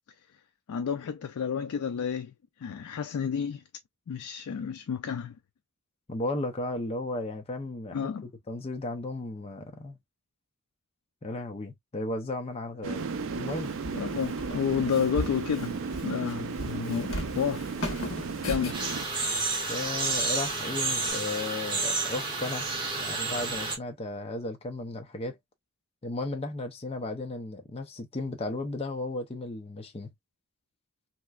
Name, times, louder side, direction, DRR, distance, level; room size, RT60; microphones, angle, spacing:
voice 1, 0.7-2.3 2.6-3.6 4.1-5.3 7.9-8.3 13.9-17.7 18.4-18.9 19.1-19.3, left 7 dB, 80° left, 0.4 m, -31 dB
voice 2, 6.1-10.0 11.2-13.1 13.3-13.7 19.7-22.7 23.0-25.4 26.0-30.1, left 2 dB, 25° left, 0.6 m, -35 dB
sound 1, 12.8-19.0, right 5 dB, 60° right, 0.4 m, -35 dB
Walk footsteps, 12.9-21.1, left 1 dB, 60° left, 1.2 m, -40 dB
sound 2, 18.7-23.8, right 3 dB, 20° right, 1.2 m, -30 dB
3.2 x 2.9 x 2.3 m
head